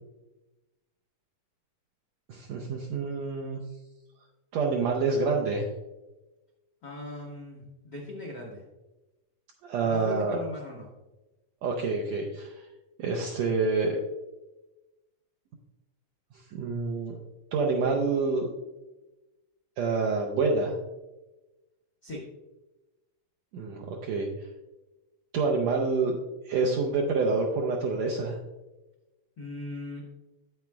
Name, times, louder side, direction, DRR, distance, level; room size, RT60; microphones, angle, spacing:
voice 1, 2.3-3.6 4.5-5.7 9.6-10.4 11.6-12.7 13.0-14.0 16.5-17.2 17.5-18.5 19.8-20.7 23.5-24.3 25.3-26.2 26.4-28.4, right 4 dB, 80° right, 0 dB, 1.5 m, -27 dB
voice 2, 6.8-8.6 9.8-10.9 22.0-22.3 29.4-30.0, left 1 dB, 85° left, -3 dB, 0.9 m, -39 dB
9.1 x 8.5 x 2.3 m, 1.1 s
omnidirectional pair, 3.9 m